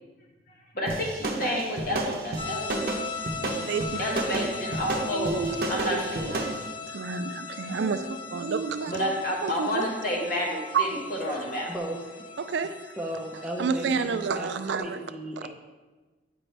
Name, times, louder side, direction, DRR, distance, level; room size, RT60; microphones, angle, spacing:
voice 1, 0.5-2.9 3.4-5.3 5.7-6.4 8.9-11.7, equal, 50° left, -2 dB, 1.5 m, -30 dB
sound 1, 0.9-6.6, right 2 dB, 55° right, 0.8 m, -32 dB
sound 2, 2.4-14.8, left 5 dB, 30° left, 0.7 m, -39 dB
voice 2, 3.7-4.0 5.1-6.6 6.9-9.1 9.4-9.9 10.7-10.9 12.4-12.9 13.6-15.0, right 5 dB, 80° right, 11 dB, 0.4 m, -30 dB
voice 3, 11.7-12.3 13.0-15.5, right 1 dB, 5° right, 0 dB, 0.7 m, -36 dB
8.6 x 5.1 x 3.3 m, 1.2 s
head